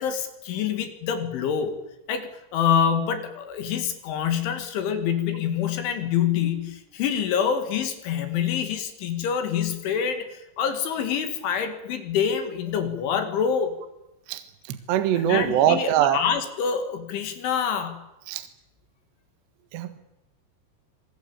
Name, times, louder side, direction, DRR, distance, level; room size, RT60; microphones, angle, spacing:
voice 1, 0.0-1.8 2.1-13.7 15.2-18.0, left 8 dB, 70° left, 8 dB, 4.5 m, -26 dB
voice 2, 14.7-16.2 18.3-18.5 19.7-20.0, right 11 dB, 65° right, 9 dB, 3.4 m, -22 dB
26.0 x 19.0 x 9.0 m, 0.91 s
omnidirectional pair, 5.9 m